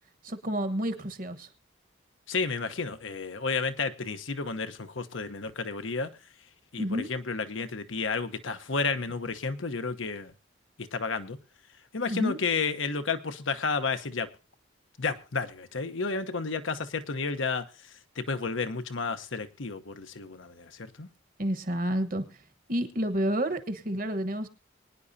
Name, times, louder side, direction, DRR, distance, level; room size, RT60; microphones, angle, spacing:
voice 1, 0.2-1.5 6.8-7.1 12.1-12.4 21.4-22.4 22.7-24.5, equal, 45° right, 10 dB, 1.2 m, -30 dB
voice 2, 2.3-6.1 6.7-10.3 10.8-11.4 11.9-14.3 15.0-17.7 18.2-21.1, left 4 dB, 75° left, 9 dB, 1.0 m, -31 dB
23.5 x 9.9 x 2.7 m, 0.32 s
head